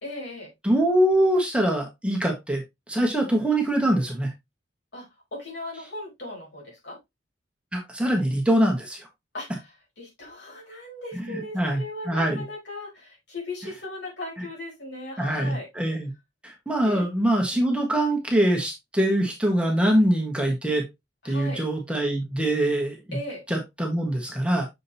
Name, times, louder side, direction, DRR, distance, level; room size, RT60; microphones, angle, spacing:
voice 1, 0.0-0.5 4.9-5.1 5.3-7.0 9.3-15.7 16.8-17.0 21.2-21.7 23.1-23.4, left 2 dB, 70° left, 4.6 m, -37 dB
voice 2, 0.6-2.6 2.9-4.3 7.7-9.0 11.1-12.4 15.2-16.1 16.4-20.9 21.2-23.2 23.5-24.7, right 1 dB, 5° right, 1.5 m, -23 dB
6.9 x 5.2 x 2.8 m
head